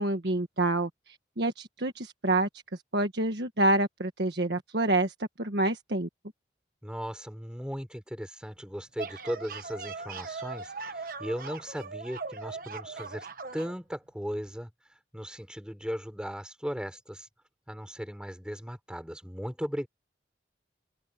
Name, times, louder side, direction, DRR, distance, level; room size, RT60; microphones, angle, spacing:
voice 1, 0.0-6.1, right 2 dB, 70° right, 1.5 m, -28 dB
voice 2, 6.8-13.3 13.5-14.7 15.1-17.3 17.7-19.9, equal, 5° right, 6.1 m, -37 dB
sound 1, 8.7-13.7, right 4 dB, 50° right, 1.3 m, -40 dB
open air
head